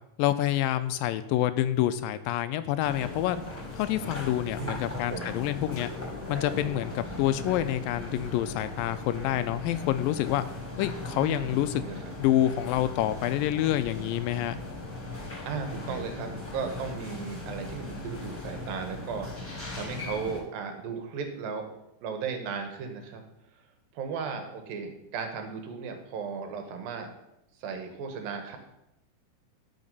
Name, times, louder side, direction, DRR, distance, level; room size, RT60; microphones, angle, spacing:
voice 1, 0.2-3.4 3.7-5.9 6.3-10.5 10.8-11.8 12.2-14.6, left 13 dB, 90° left, 13 dB, 2.3 m, -27 dB
sound 1, 2.8-20.4, left 2 dB, 5° left, 3.6 m, -39 dB
voice 2, 4.6-5.3 11.1-12.0 15.5-21.8 22.0-23.2 23.9-27.1 27.6-28.6, right 5 dB, 85° right, 5 dB, 3.1 m, -36 dB
12.5 x 5.8 x 5.5 m, 0.86 s
omnidirectional pair, 4.0 m